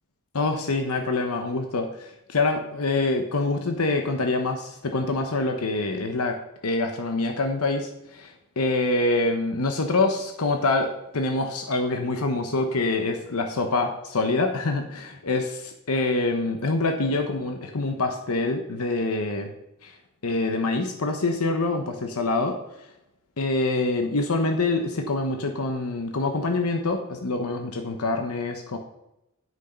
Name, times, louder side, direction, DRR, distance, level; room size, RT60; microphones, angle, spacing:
voice 1, 0.3-6.4 6.6-19.5 19.8-19.9 20.2-22.6 23.4-28.8, left 2 dB, 75° left, 5 dB, 0.9 m, -25 dB
8.7 x 6.3 x 5.3 m, 0.87 s
head